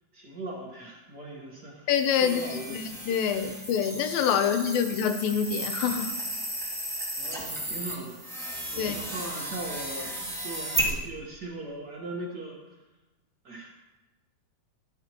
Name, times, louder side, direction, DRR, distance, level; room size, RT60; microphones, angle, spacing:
voice 1, 0.1-1.9 2.2-2.9 3.2-3.6 4.3-4.7 7.2-12.8 13.4-13.8, right 2 dB, 65° right, -3 dB, 1.0 m, -40 dB
voice 2, 1.9-6.1 8.8-9.0, left 8 dB, 80° left, 8 dB, 2.5 m, -26 dB
sound 1, 1.9-10.9, right 1 dB, ahead, 1.1 m, -34 dB
13.5 x 12.5 x 3.0 m, 1.1 s
omnidirectional pair, 4.2 m